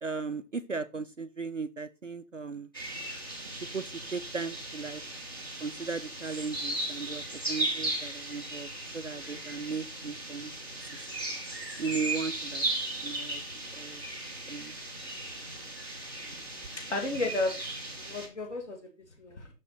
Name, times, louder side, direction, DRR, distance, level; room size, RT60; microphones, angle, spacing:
voice 1, 0.0-2.7 3.7-5.0 5.6-10.5 11.0-11.1 11.8-12.7 13.0-13.4 13.7-14.0 14.5-14.7, right 4 dB, 50° right, 10 dB, 0.5 m, -36 dB
sound 1, 2.7-18.3, right 2 dB, 15° left, 0.8 m, -37 dB
voice 2, 16.9-17.5 18.0-18.9 19.2-19.5, left 2 dB, 45° left, 2 dB, 2.5 m, -32 dB
6.6 x 6.5 x 4.1 m, 0.28 s
figure-of-eight pair, 155°, 49 cm